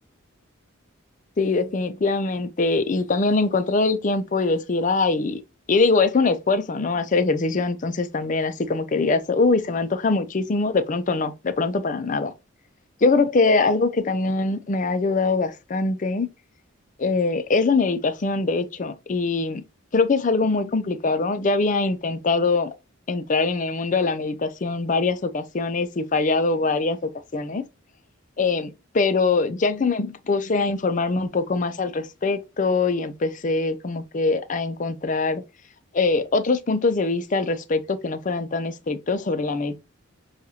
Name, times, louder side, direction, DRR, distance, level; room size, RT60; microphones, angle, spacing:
voice 1, 1.4-5.4 5.7-12.3 13.0-16.3 17.0-19.6 19.9-22.7 23.1-27.6 28.4-35.4 35.9-39.8, left 3 dB, 35° left, 0.4 m, -23 dB
6.4 x 2.3 x 2.8 m
head